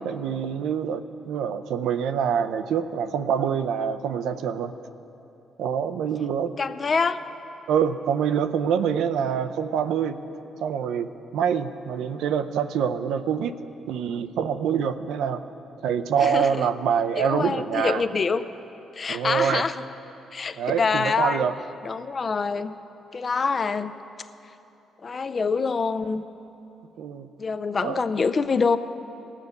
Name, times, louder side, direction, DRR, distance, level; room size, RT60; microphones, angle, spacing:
voice 1, 0.0-4.7 5.6-6.5 7.7-10.2 10.6-13.5 13.9-15.4 15.8-18.0 19.1-19.7 20.5-21.5 27.0-27.3 27.8-28.0, right 7 dB, 85° right, 9 dB, 0.5 m, -25 dB
voice 2, 6.6-7.2 16.2-16.7 17.2-18.4 19.0-19.8 20.3-21.5 21.8-22.8 23.1-23.9 25.0-26.2 27.4-28.8, left 4 dB, 40° left, 12 dB, 0.5 m, -25 dB
18.0 x 7.4 x 6.5 m, 3.0 s
cardioid pair, 90°, 0 cm